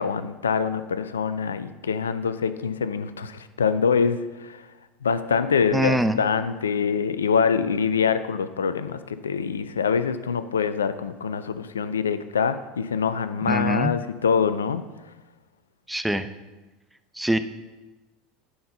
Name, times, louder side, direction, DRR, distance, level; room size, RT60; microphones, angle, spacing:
voice 1, 0.0-4.6 5.0-14.8, left 6 dB, 90° left, 13 dB, 0.4 m, -25 dB
voice 2, 5.7-6.2 13.5-13.9 15.9-16.3 17.1-17.4, right 1 dB, 5° right, 10 dB, 0.6 m, -23 dB
10.0 x 4.4 x 5.4 m, 1.2 s
hypercardioid pair, 80°, 0 cm